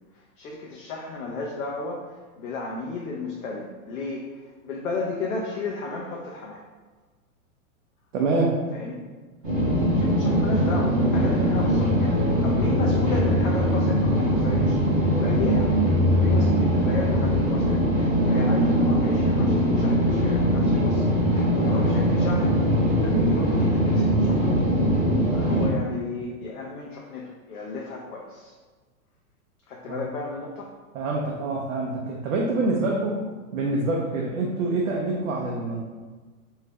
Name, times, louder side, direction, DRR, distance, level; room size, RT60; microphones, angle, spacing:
voice 1, 0.1-6.6 8.7-9.0 9.9-14.8 15.1-24.6 25.2-28.5 29.7-30.7, left 3 dB, 75° left, -2 dB, 0.6 m, -34 dB
voice 2, 8.1-8.6 29.9-30.1 30.9-33.2 33.5-35.8, right 2 dB, 60° right, -2 dB, 0.5 m, -26 dB
sound 1, 9.4-25.7, equal, 20° right, 0.8 m, -21 dB
2.7 x 2.2 x 3.3 m, 1.3 s
supercardioid pair, 175°, 44 cm